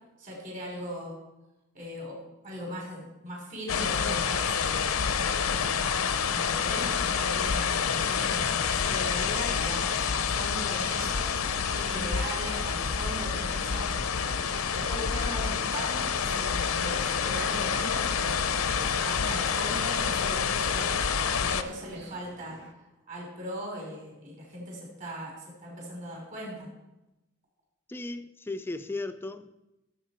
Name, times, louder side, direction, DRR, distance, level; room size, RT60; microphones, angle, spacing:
voice 1, 0.2-1.2 1.7-5.0 5.5-5.9 6.2-14.3 14.7-18.4 18.9-21.0 21.3-22.6 23.1-26.7, equal, 40° right, 3.4 m, -39 dB
sound 1, 3.7-21.6, left 6 dB, 85° left, 0.6 m, -28 dB
sound 2, 7.0-22.7, right 3 dB, 55° right, 0.8 m, -48 dB
voice 2, 27.9-29.6, left 2 dB, 10° left, 0.4 m, -36 dB
14.5 x 7.5 x 4.4 m
head